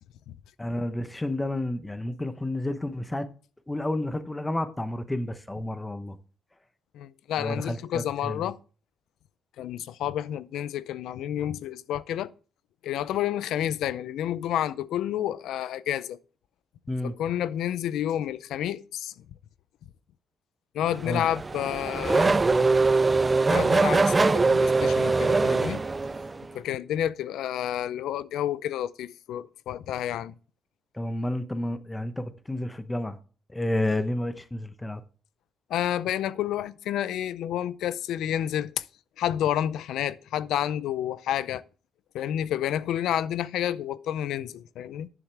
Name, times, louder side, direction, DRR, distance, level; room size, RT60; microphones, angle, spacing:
voice 1, 0.6-3.3 3.7-6.2 7.4-8.5 16.9-17.1 21.0-21.2 30.9-33.2 33.5-35.0, left 1 dB, 10° left, 0.8 m, -30 dB
voice 2, 6.9-8.6 9.6-12.3 12.8-16.2 17.0-19.1 20.7-22.4 23.5-25.8 26.5-30.3 35.7-38.8 39.2-41.6 42.1-45.1, left 11 dB, 80° left, 0.5 m, -30 dB
Race car auto racing / Accelerating revving vroom, 20.9-26.5, right 3 dB, 25° right, 0.4 m, -22 dB
11.5 x 7.4 x 3.4 m
cardioid pair, 100°, 0 cm